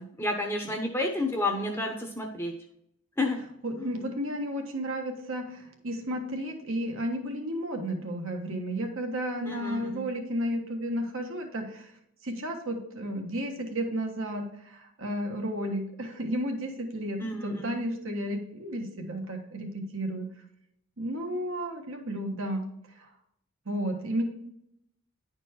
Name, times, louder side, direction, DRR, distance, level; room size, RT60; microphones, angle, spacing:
voice 1, 0.0-2.5 3.2-3.4 9.5-10.0 17.2-17.8, left 2 dB, 10° left, 2 dB, 0.7 m, -30 dB
voice 2, 3.6-11.9 12.2-20.3 21.0-22.7 23.0-23.1 23.6-24.2, equal, 65° right, 3 dB, 1.4 m, -33 dB
10.5 x 4.5 x 4.4 m, 0.76 s
head